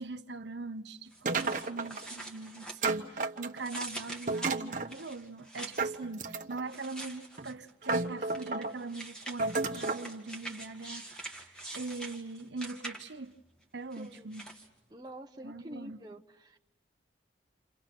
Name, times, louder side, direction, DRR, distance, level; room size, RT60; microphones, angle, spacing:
voice 1, 0.0-13.3 13.7-14.5 15.4-16.0, right 3 dB, 75° right, 1.0 m, -42 dB
sound 1, 1.1-3.2 3.6-6.0 6.7-7.7 8.3-13.3 13.9-14.7, right 2 dB, 5° left, 2.0 m, -45 dB
sound 2, 1.3-2.1 2.8-3.8 4.3-4.9 5.8-6.7 7.4-7.5 7.8-8.7 9.4-10.1, right 3 dB, 45° right, 1.1 m, -32 dB
voice 2, 14.0-14.3 14.9-16.6, right 1 dB, 25° right, 0.9 m, -47 dB
28.5 x 28.5 x 6.0 m
head